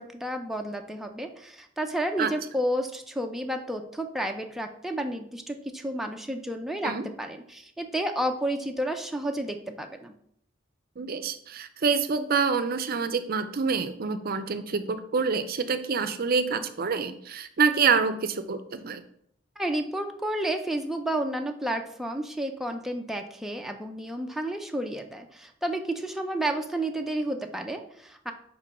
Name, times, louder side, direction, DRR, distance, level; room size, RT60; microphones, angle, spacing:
voice 1, 0.0-10.1 19.6-28.3, right 1 dB, ahead, 3 dB, 0.5 m, -31 dB
voice 2, 11.0-19.0, right 5 dB, 50° right, 11 dB, 0.5 m, -27 dB
5.3 x 4.5 x 5.3 m, 0.69 s
head